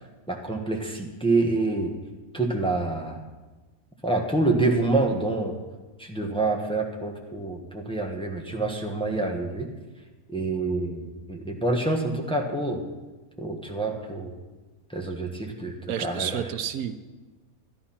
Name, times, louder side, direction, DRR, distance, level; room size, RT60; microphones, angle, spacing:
voice 1, 0.3-1.9 2.3-3.2 4.0-5.6 6.0-9.7 10.3-12.8 13.4-14.3 14.9-16.4, right 2 dB, 5° left, 1 dB, 1.3 m, -27 dB
voice 2, 15.9-17.0, right 9 dB, 85° right, 10 dB, 1.2 m, -30 dB
12.5 x 11.5 x 5.8 m, 1.2 s
omnidirectional pair, 1.5 m